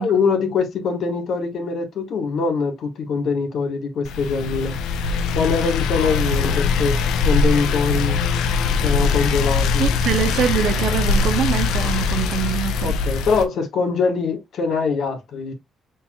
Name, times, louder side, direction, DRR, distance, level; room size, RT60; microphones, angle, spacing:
voice 1, 0.0-4.8 5.3-7.0 7.2-8.2 8.8-9.9 12.8-15.5, left 5 dB, 65° left, 1.3 m, -23 dB
sound 1, 4.0-13.4, left 5 dB, 85° left, 0.5 m, -21 dB
voice 2, 9.8-13.0, right 9 dB, 70° right, 0.6 m, -23 dB
4.1 x 4.1 x 2.2 m
cardioid pair, 90°, 0 cm